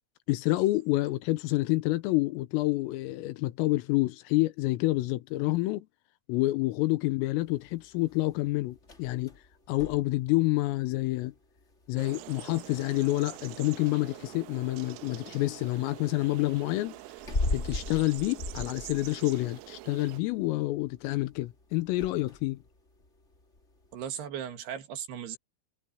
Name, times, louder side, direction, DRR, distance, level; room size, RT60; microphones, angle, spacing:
voice 1, 0.3-5.9 6.3-9.3 9.7-11.3 11.9-17.0 17.5-22.6, left 19 dB, 85° left, 3.6 m, -28 dB
sound 1, 7.4-24.1, left 2 dB, 30° left, 1.3 m, -41 dB
sound 2, 12.0-20.2, right 20 dB, 90° right, 3.3 m, -45 dB
voice 2, 23.9-25.4, right 9 dB, 60° right, 3.5 m, -37 dB
omnidirectional pair, 5.9 m